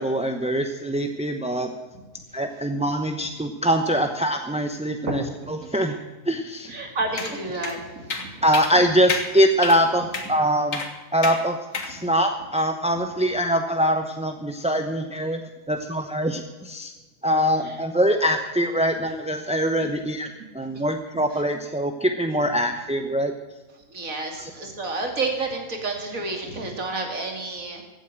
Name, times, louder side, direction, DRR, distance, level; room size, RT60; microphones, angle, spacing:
voice 1, 0.0-1.7 2.3-5.2 5.5-6.7 8.4-10.8 11.1-11.6 11.9-15.4 15.7-16.9 17.2-20.3 20.5-23.3 24.4-24.5, equal, 5° right, 5 dB, 0.6 m, -23 dB
voice 2, 6.6-8.4 11.9-12.1 17.6-17.8 19.8-19.9 21.1-21.4 23.9-27.8, right 3 dB, 70° right, 3 dB, 3.0 m, -30 dB
sound 1, 7.2-7.3 7.6-7.7 8.1-8.3 8.5-8.7 9.1-9.3 9.6-9.8 10.1-10.3 10.7-10.9 11.2-11.4 11.7-11.9, left 4 dB, 65° left, 2.0 m, -28 dB
16.0 x 9.1 x 7.6 m, 1.2 s
omnidirectional pair, 1.5 m